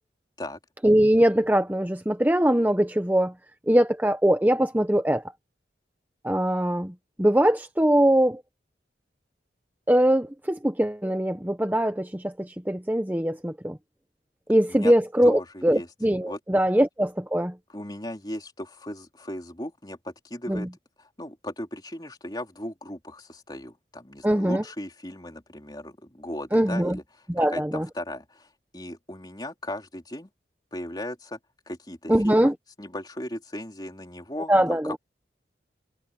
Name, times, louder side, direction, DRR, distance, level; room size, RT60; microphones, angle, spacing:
voice 1, 0.8-3.3 3.7-5.2 6.2-6.9 7.2-8.4 9.9-13.8 14.5-17.5 20.5-20.7 24.2-24.6 26.5-27.0 27.3-27.9 32.1-32.5 34.5-35.0, right 1 dB, 10° right, 0.7 m, -22 dB
voice 2, 15.2-15.9 16.3-16.4 17.7-20.7 21.0-30.3 30.7-31.4 31.7-35.0, left 1 dB, 25° left, 3.7 m, -37 dB
head